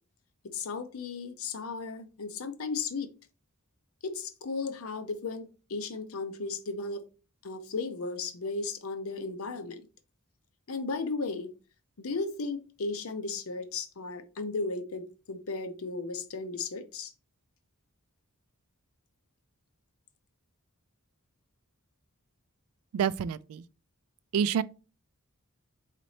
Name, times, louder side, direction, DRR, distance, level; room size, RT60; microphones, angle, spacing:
voice 1, 0.4-3.1 4.0-7.0 7.4-9.8 10.7-11.5 12.0-17.1, left 4 dB, 80° left, 0.6 m, -35 dB
voice 2, 22.9-23.6 24.3-24.6, right 7 dB, 90° right, 0.3 m, -27 dB
4.1 x 4.0 x 3.2 m
head